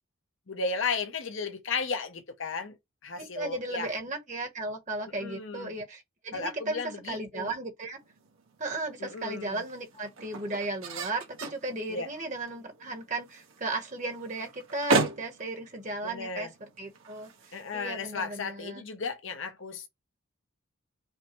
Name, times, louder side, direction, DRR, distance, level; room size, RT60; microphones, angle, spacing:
voice 1, 0.5-2.8 3.0-3.9 5.2-5.7 6.3-7.5 9.0-9.6 11.9-12.1 16.0-16.5 17.5-19.9, left 4 dB, 60° left, 0.8 m, -34 dB
voice 2, 3.2-6.8 7.1-8.0 8.6-16.5 16.8-18.8, right 2 dB, 35° right, 1.1 m, -35 dB
sound 1, 8.0-18.3, right 3 dB, 70° right, 1.3 m, -36 dB
5.4 x 2.2 x 3.0 m
head